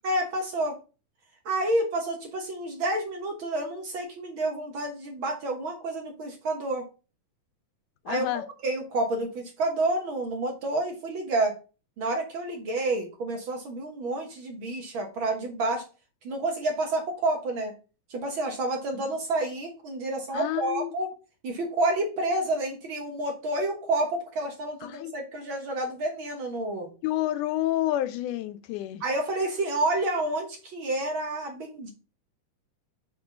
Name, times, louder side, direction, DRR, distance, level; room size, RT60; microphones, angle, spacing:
voice 1, 0.0-0.8 1.4-6.9 8.1-11.6 12.0-15.8 16.2-17.7 18.1-21.1 21.4-26.9 29.0-31.9, right 2 dB, 55° right, 1.6 m, -29 dB
voice 2, 8.1-8.4 19.0-19.1 20.3-20.9 24.8-25.2 27.0-29.0, left 14 dB, 85° left, 2.2 m, -29 dB
5.6 x 4.5 x 5.6 m
omnidirectional pair, 3.6 m